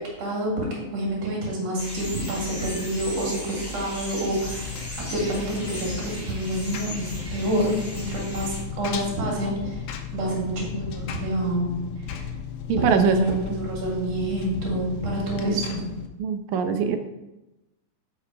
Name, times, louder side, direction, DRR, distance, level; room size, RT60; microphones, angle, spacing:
voice 1, 0.2-9.8 10.1-11.7 12.8-15.8, right 1 dB, 55° right, -3 dB, 3.3 m, -27 dB
sound 1, 1.8-8.6, left 1 dB, 10° left, 2.0 m, -37 dB
Engine, 4.5-16.1, left 8 dB, 80° left, 2.1 m, -36 dB
voice 2, 12.7-13.6 15.5-15.6 16.2-17.0, right 6 dB, 75° right, 7 dB, 2.1 m, -23 dB
7.2 x 5.6 x 4.7 m, 0.98 s
omnidirectional pair, 3.5 m